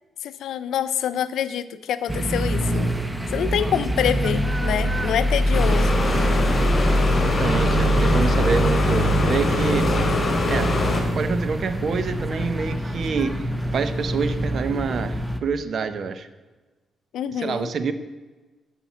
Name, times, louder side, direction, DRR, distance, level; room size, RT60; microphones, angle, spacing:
voice 1, 0.2-2.9 3.3-6.0 17.1-17.7, left 9 dB, 80° left, 14 dB, 0.5 m, -26 dB
sound 1, 2.1-15.4, equal, 10° right, 0.9 m, -24 dB
sound 2, 5.5-11.0, left 2 dB, 45° left, 2.9 m, -24 dB
voice 2, 7.1-9.9 10.5-10.7 11.1-16.3 17.4-17.9, right 5 dB, 60° right, 11 dB, 0.8 m, -27 dB
9.8 x 5.9 x 7.2 m, 1.2 s
cardioid pair, 70°, 0 cm